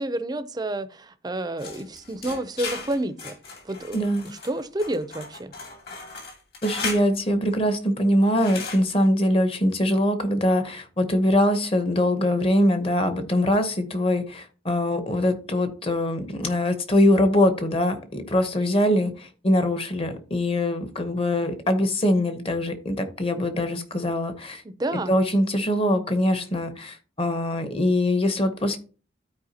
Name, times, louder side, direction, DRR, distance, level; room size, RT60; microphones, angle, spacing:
voice 1, 0.0-3.3 3.6-5.5 24.6-25.2, right 1 dB, 20° right, 12 dB, 0.5 m, -30 dB
sound 1, 1.6-7.1 8.4-8.8, left 4 dB, 55° left, 2.3 m, -36 dB
voice 2, 3.9-4.2 6.6-24.6 24.9-28.8, left 1 dB, 30° left, 8 dB, 0.9 m, -23 dB
13.0 x 4.5 x 2.8 m, 0.38 s
head